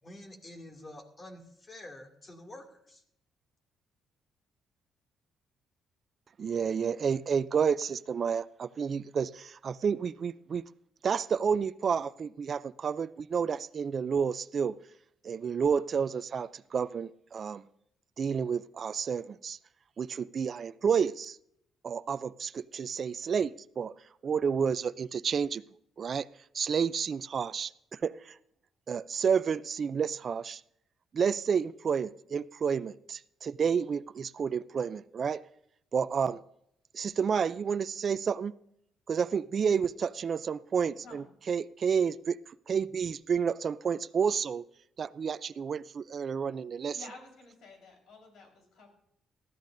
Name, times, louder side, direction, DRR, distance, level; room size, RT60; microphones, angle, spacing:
voice 1, 0.0-3.0, left 1 dB, 30° left, 3 dB, 2.4 m, -48 dB
voice 2, 6.4-10.6 11.0-14.7 15.2-17.6 18.2-19.6 20.0-21.4 21.8-23.9 24.2-25.6 26.0-26.3 26.5-28.3 28.9-30.6 31.1-35.4 35.9-36.4 36.9-38.5 39.1-42.4 42.7-44.6 45.0-47.0, right 6 dB, 50° right, 15 dB, 0.4 m, -30 dB
voice 3, 46.9-48.9, left 3 dB, 75° left, 2 dB, 4.2 m, -51 dB
19.5 x 13.5 x 2.6 m, 0.73 s
cardioid pair, 90°, 0 cm